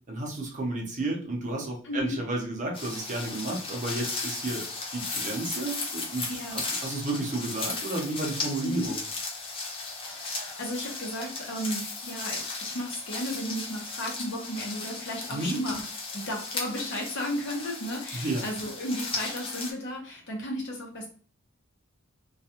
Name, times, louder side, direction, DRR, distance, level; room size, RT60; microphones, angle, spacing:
voice 1, 0.1-4.6 4.9-9.0 15.3-15.6 18.1-18.4, right 2 dB, 35° right, -1 dB, 0.7 m, -32 dB
voice 2, 1.8-2.2 6.3-6.6 8.6-8.9 10.0-15.8 16.1-21.1, equal, 60° left, 0 dB, 0.8 m, -34 dB
sound 1, 2.7-19.7, left 3 dB, 25° left, 0.5 m, -36 dB
2.4 x 2.2 x 2.8 m, 0.42 s
head